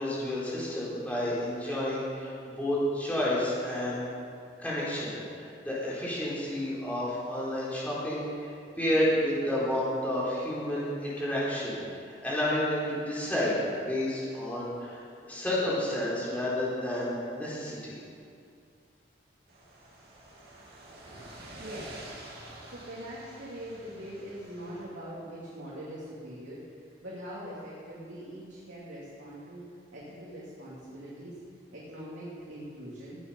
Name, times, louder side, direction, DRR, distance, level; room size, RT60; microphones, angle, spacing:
voice 1, 0.0-4.1 4.6-11.8 12.2-17.9, left 1 dB, 10° left, -8 dB, 3.6 m, -30 dB
sound 1, 19.5-24.8, right 1 dB, 55° right, 2.6 m, -48 dB
voice 2, 21.6-22.0 22.7-31.4 31.7-33.2, equal, 80° right, -7 dB, 3.1 m, -42 dB
17.5 x 8.3 x 5.6 m, 2.3 s
head